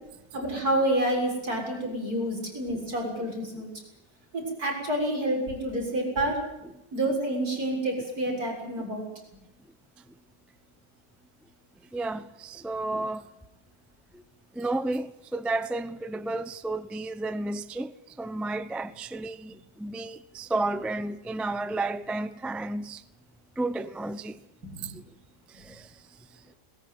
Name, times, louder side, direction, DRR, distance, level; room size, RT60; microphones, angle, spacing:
voice 1, 0.3-3.7 4.3-6.4 6.9-9.1 24.6-24.9 25.5-25.6, right 1 dB, 60° right, 7.6 m, -28 dB
voice 2, 11.9-13.3 14.1-14.2 14.5-23.0 23.6-24.4 24.8-25.0 25.5-26.0, right 2 dB, ahead, 0.5 m, -32 dB
21.5 x 20.0 x 9.5 m
omnidirectional pair, 1.8 m